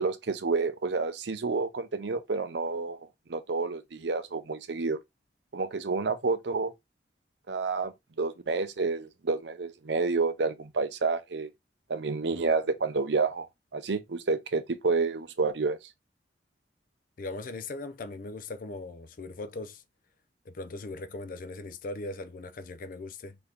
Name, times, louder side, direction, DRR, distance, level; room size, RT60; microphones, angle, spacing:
voice 1, 0.0-5.0 5.5-6.7 7.5-11.5 11.9-13.5 13.7-15.8, right 4 dB, 70° right, 0.6 m, -29 dB
voice 2, 17.2-19.8 20.5-23.4, left 2 dB, 50° left, 0.5 m, -39 dB
4.0 x 2.8 x 3.4 m
head